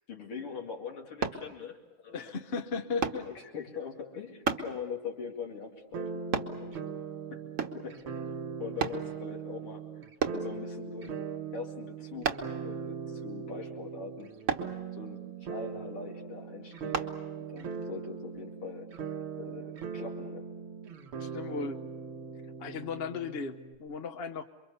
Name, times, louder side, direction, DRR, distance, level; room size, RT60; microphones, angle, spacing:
voice 1, 0.1-2.4 2.9-6.3 6.6-7.0 7.3-7.4 7.7-9.9 10.3-14.3 14.6-18.9 19.4-20.5, left 6 dB, 85° left, 0 dB, 3.4 m, -42 dB
sound 1, 1.2-1.4 3.0-3.3 4.5-4.7 6.3-6.6 7.6-7.9 8.8-9.0 10.2-10.5 12.2-12.6 14.5-14.7 16.9-17.1 17.7-17.8, right 5 dB, 45° right, 1.3 m, -31 dB
voice 2, 2.1-3.2 21.2-21.8 22.6-24.4, left 5 dB, 55° left, 7 dB, 0.6 m, -36 dB
sound 2, 5.9-23.8, right 6 dB, 85° right, 2.4 m, -40 dB
28.0 x 23.5 x 6.9 m, 1.1 s
omnidirectional pair, 2.4 m